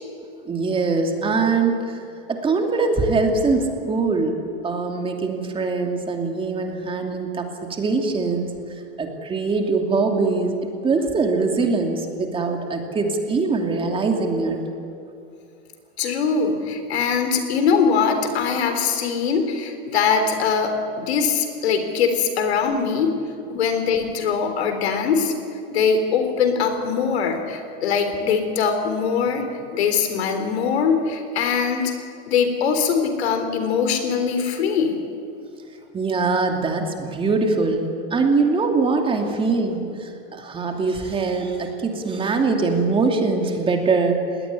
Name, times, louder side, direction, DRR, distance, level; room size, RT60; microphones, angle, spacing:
voice 1, 0.5-2.0 2.3-8.5 9.0-14.6 35.9-44.2, right 4 dB, 15° right, 3 dB, 2.7 m, -22 dB
voice 2, 16.0-23.1 23.5-25.3 25.7-31.9 32.3-35.0, left 6 dB, 85° left, 7 dB, 3.7 m, -22 dB
21.0 x 17.5 x 9.9 m, 2.5 s
supercardioid pair, 140°, 31 cm